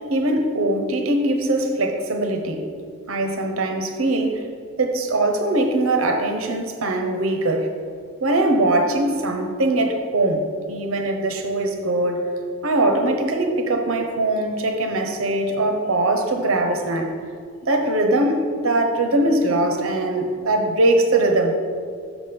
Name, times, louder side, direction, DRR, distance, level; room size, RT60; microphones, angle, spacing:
voice 1, 0.1-2.7 3.1-4.4 4.8-7.7 8.2-12.3 12.6-17.1 17.7-21.6, right 2 dB, 85° right, 4 dB, 0.9 m, -21 dB
6.2 x 6.1 x 5.3 m, 2.2 s
head